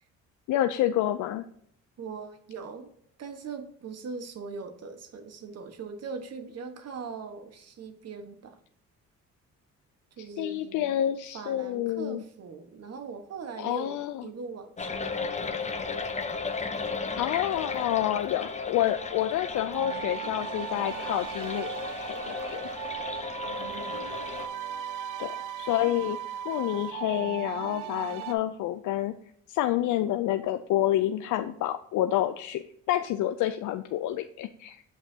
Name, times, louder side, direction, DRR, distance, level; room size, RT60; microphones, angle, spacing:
voice 1, 0.5-1.4 10.2-12.2 13.6-14.2 17.2-21.7 22.0-22.6 25.2-26.2 26.4-29.1 29.5-34.8, left 13 dB, 80° left, 9 dB, 0.5 m, -28 dB
voice 2, 2.0-2.9 3.2-8.6 10.2-11.0 11.3-15.6 23.5-24.1, right 5 dB, 55° right, 7 dB, 1.3 m, -41 dB
sound 1, 14.8-24.5, left 4 dB, 25° left, 0.8 m, -35 dB
sound 2, 19.7-28.3, right 10 dB, 90° right, 0.6 m, -37 dB
7.5 x 5.7 x 2.7 m, 0.67 s
cardioid pair, 90°, 30 cm